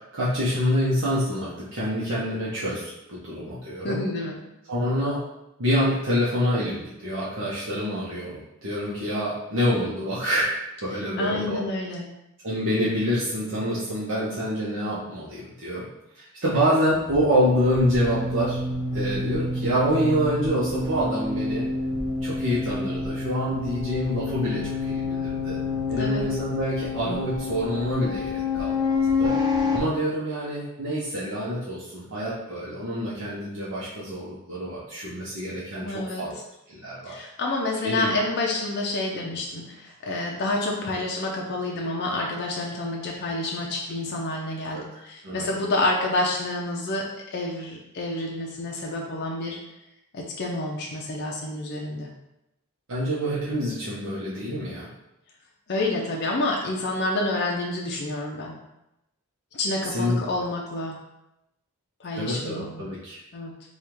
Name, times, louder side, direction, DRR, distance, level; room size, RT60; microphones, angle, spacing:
voice 1, 0.1-4.0 4.7-5.2 5.6-10.5 10.8-11.6 12.4-15.9 16.1-18.6 18.9-21.7 22.2-25.6 25.9-29.4 29.7-36.3 36.7-37.1 37.8-38.1 44.7-44.8 45.2-45.5 52.9-54.9 59.9-60.2 62.1-63.2, equal, 60° right, -8 dB, 0.9 m, -26 dB
voice 2, 3.8-4.4 11.2-12.1 25.9-26.3 35.8-36.2 37.1-49.6 50.1-52.1 55.7-58.5 59.5-60.9 62.0-62.9 63.3-63.5, left 2 dB, 50° left, -1 dB, 0.5 m, -28 dB
sound 1, 16.9-29.8, left 3 dB, 20° right, 0.5 m, -28 dB
3.4 x 2.4 x 4.5 m, 0.89 s
head